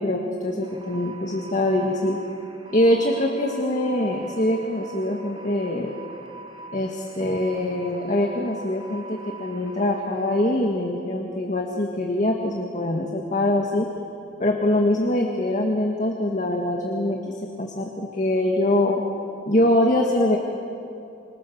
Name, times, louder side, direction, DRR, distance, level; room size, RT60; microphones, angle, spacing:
voice 1, 0.0-2.2 2.7-5.9 6.7-13.9 14.4-19.0 19.5-20.4, left 1 dB, 40° left, 1 dB, 1.9 m, -23 dB
sound 1, 0.6-10.5, right 3 dB, 30° right, 2.8 m, -42 dB
27.0 x 24.5 x 7.0 m, 2.6 s
head